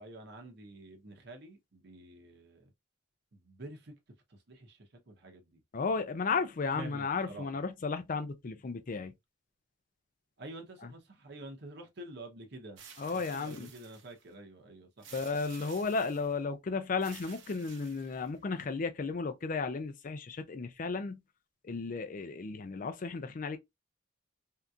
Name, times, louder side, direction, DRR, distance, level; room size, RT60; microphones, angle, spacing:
voice 1, 0.0-2.7 3.3-3.9 4.3-5.6 6.7-7.5 10.4-12.8 13.1-15.1, right 1 dB, 60° right, 0.8 m, -48 dB
voice 2, 5.7-9.1 10.8-10.9 13.0-13.7 15.1-21.2 21.6-23.6, left 4 dB, 45° left, 0.5 m, -34 dB
sound 1, 12.8-14.2 15.0-16.4 17.0-18.4, right 7 dB, 90° right, 0.9 m, -53 dB
3.6 x 2.8 x 2.3 m
head